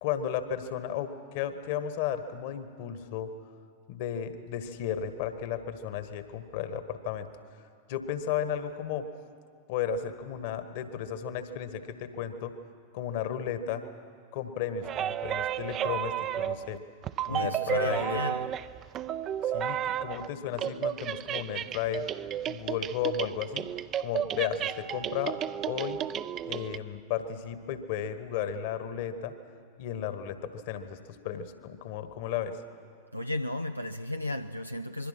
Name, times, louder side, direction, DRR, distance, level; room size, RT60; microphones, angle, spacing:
voice 1, 0.0-3.3 3.9-7.3 7.9-9.1 9.7-12.5 12.9-13.8 14.3-16.8 17.3-18.2 19.4-22.1 22.5-23.7 24.0-25.4 25.7-26.0 26.5-29.3 29.8-32.6, left 9 dB, 50° left, 1.6 m, -34 dB
sound 1, 14.8-16.8 17.0-20.3 20.5-26.8, right 10 dB, 30° right, 0.6 m, -32 dB
voice 2, 17.3-18.5 33.1-35.1, left 1 dB, 90° left, 0.5 m, -34 dB
26.0 x 22.5 x 6.2 m
figure-of-eight pair, 90°, 0 cm